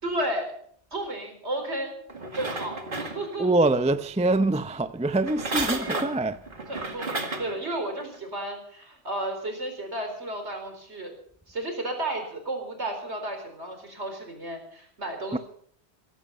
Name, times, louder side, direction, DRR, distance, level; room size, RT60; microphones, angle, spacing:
voice 1, 0.0-0.5 0.9-2.0 2.3-3.5 6.7-11.1 11.5-15.4, right 1 dB, 65° right, 4.6 m, -33 dB
sound 1, 2.1-3.6 5.2-7.6 8.1-8.2, right 2 dB, 45° right, 2.1 m, -32 dB
voice 2, 3.4-6.4 15.3-15.4, right 2 dB, 10° right, 0.4 m, -24 dB
16.5 x 15.5 x 5.5 m
omnidirectional pair, 1.2 m